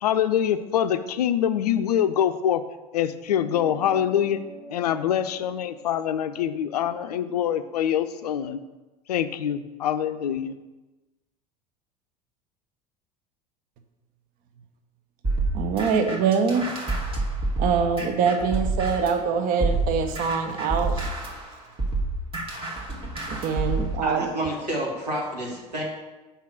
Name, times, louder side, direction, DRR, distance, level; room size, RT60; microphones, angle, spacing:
voice 1, 0.0-2.6 2.9-4.4 4.7-8.6 9.1-10.6, left 10 dB, 75° left, 11 dB, 0.4 m, -24 dB
sound 1, 3.3-8.1, right 4 dB, ahead, 0.8 m, -46 dB
sound 2, 15.2-19.2 19.6-24.0, right 2 dB, 25° right, 1.6 m, -28 dB
voice 2, 15.5-16.7 17.6-21.1 23.3-24.3, right 6 dB, 45° right, 7 dB, 0.7 m, -24 dB
voice 3, 24.0-25.8, right 1 dB, 85° right, -3 dB, 1.8 m, -29 dB
5.6 x 3.7 x 6.0 m, 1.1 s
figure-of-eight pair, 75°, 20 cm